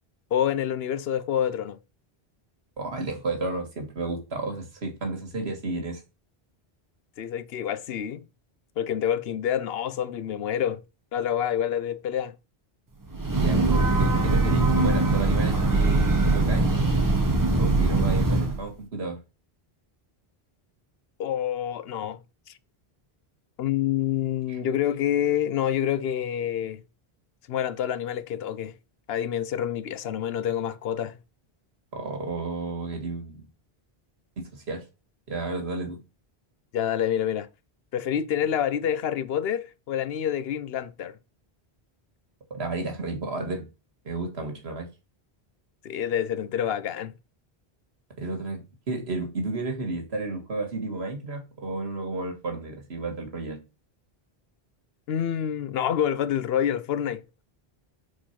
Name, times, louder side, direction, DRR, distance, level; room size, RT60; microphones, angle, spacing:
voice 1, 0.3-1.8 7.2-8.3 8.8-10.8 11.1-12.3 21.2-22.2 23.6-26.8 27.5-28.8 29.1-31.2 36.7-37.5 37.9-41.2 45.8-47.1 55.1-57.2, left 10 dB, 75° left, 0.8 m, -27 dB
voice 2, 2.8-6.0 13.3-16.7 17.6-19.2 24.5-24.6 31.9-33.5 34.4-34.9 35.3-36.0 42.5-43.7 44.1-44.9 48.2-53.6, right 3 dB, 80° right, 1.9 m, -32 dB
Breathing / Train, 13.1-18.6, right 2 dB, 20° right, 1.0 m, -22 dB
4.6 x 4.2 x 5.7 m
omnidirectional pair, 1.1 m